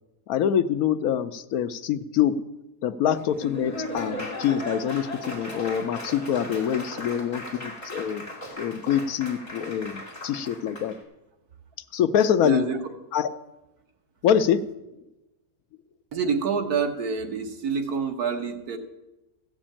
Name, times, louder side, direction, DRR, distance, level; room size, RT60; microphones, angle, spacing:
voice 1, 0.3-2.4 2.8-8.3 8.6-10.9 11.9-12.7 13.1-13.3 14.2-14.7, left 9 dB, 75° left, 12 dB, 1.1 m, -25 dB
Laughter / Applause, 3.1-11.0, left 1 dB, 25° left, 2.5 m, -37 dB
voice 2, 12.4-12.8 16.1-18.8, right 6 dB, 85° right, 4 dB, 1.8 m, -27 dB
15.0 x 6.1 x 8.7 m, 0.99 s
omnidirectional pair, 1.6 m